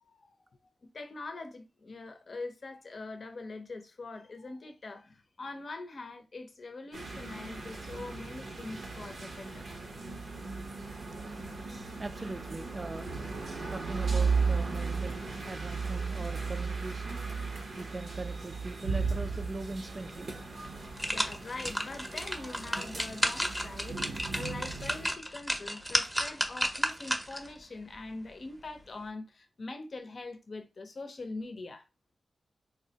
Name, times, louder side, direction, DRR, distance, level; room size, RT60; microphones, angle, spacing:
voice 1, 0.8-9.7 16.2-16.3 21.1-31.8, left 3 dB, 60° left, 0.6 m, -43 dB
sound 1, 6.9-25.1, right 4 dB, 80° right, 0.7 m, -36 dB
voice 2, 12.0-13.1 13.7-17.2 17.8-21.0, right 2 dB, 45° right, 0.3 m, -41 dB
sound 2, 20.1-20.2 20.6-27.5 27.9-28.0, equal, 5° right, 0.6 m, -33 dB
3.4 x 2.1 x 2.7 m
cardioid pair, 50°, 0 cm